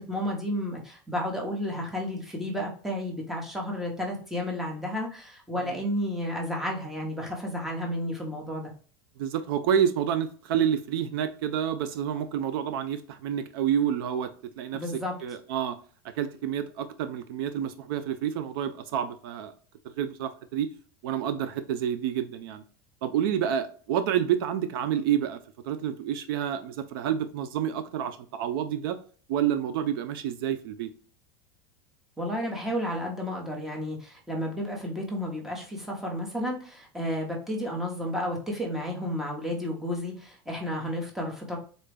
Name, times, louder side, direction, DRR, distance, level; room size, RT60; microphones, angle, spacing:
voice 1, 0.0-8.7 14.7-15.1 32.2-41.6, equal, 5° right, 0.8 m, -32 dB
voice 2, 9.2-15.8 16.1-19.5 20.0-20.7 21.0-22.6 23.0-25.4 25.6-29.0 29.3-30.9, right 9 dB, 75° right, 0.4 m, -29 dB
4.0 x 2.2 x 3.4 m
supercardioid pair, 150°, 12 cm